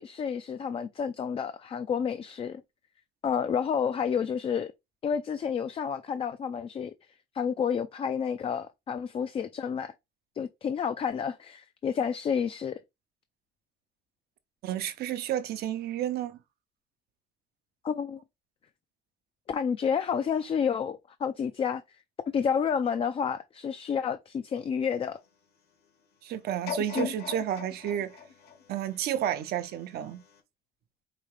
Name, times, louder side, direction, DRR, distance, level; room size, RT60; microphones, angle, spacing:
voice 1, 0.0-2.6 3.2-4.7 5.0-6.9 7.3-9.9 10.4-12.8 17.8-18.2 19.5-21.8 22.3-25.2 27.0-27.1, left 7 dB, 35° left, 0.4 m, -30 dB
voice 2, 14.6-16.4 26.2-28.2 28.7-30.2, right 10 dB, 70° right, 0.7 m, -31 dB
sound 1, 26.7-29.7 30.3-30.4, left 6 dB, 70° left, 1.4 m, -40 dB
4.9 x 2.8 x 3.1 m
cardioid pair, 110°, 17 cm